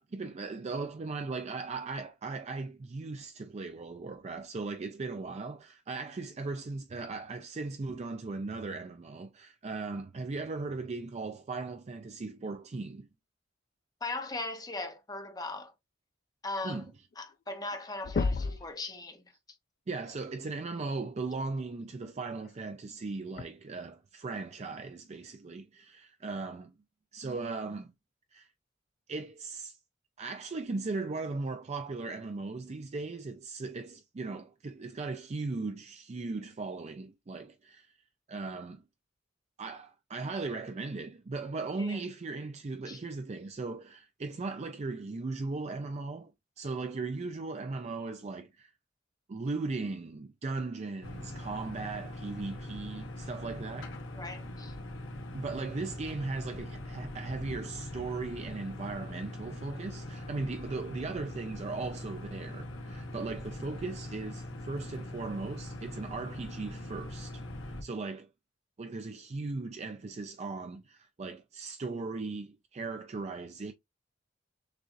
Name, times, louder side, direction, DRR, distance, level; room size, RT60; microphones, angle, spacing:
voice 1, 0.0-13.1 16.6-16.9 19.9-26.7 27.1-27.9 28.3-28.5 29.1-29.8 30.2-37.9 38.3-38.8 39.6-46.3 46.6-48.7 49.3-53.9 55.3-68.3 68.8-73.7, right 3 dB, 35° right, 0.4 m, -38 dB
voice 2, 14.0-15.7 16.4-16.9 17.2-19.2 41.8-42.0 42.9-43.0 54.1-54.7, left 2 dB, 20° left, 0.9 m, -39 dB
sound 1, 17.1-17.2 17.5-17.8 18.0-18.7 20.4-20.5 22.4-22.5 23.4-23.5, left 4 dB, 45° left, 0.3 m, -31 dB
sound 2, 51.0-67.8, left 1 dB, 80° left, 1.0 m, -42 dB
6.6 x 2.4 x 2.5 m
head